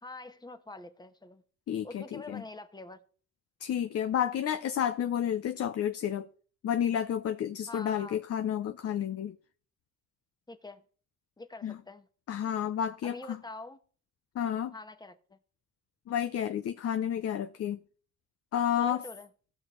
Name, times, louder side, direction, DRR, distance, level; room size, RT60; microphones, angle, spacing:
voice 1, 0.0-1.4 1.8-3.0 7.7-8.2 10.5-10.8 11.4-12.1 13.0-13.8 14.7-15.4 18.8-19.3, left 2 dB, 15° left, 1.1 m, -45 dB
voice 2, 1.7-2.4 3.6-6.3 6.6-9.4 11.6-11.8 12.3-13.2 14.3-14.7 16.1-17.8 18.5-19.0, left 9 dB, 50° left, 0.6 m, -30 dB
17.0 x 6.1 x 3.2 m
cardioid pair, 90°, 30 cm